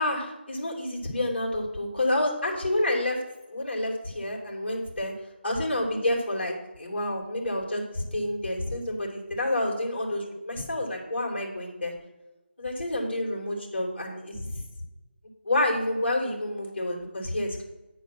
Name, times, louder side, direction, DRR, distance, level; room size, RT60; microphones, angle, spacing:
voice 1, 0.0-3.2 3.5-5.1 5.4-11.9 12.6-14.6 15.4-17.6, left 1 dB, 60° left, -2 dB, 2.8 m, -29 dB
9.7 x 4.6 x 5.9 m, 1.1 s
figure-of-eight pair, 170°, 6 cm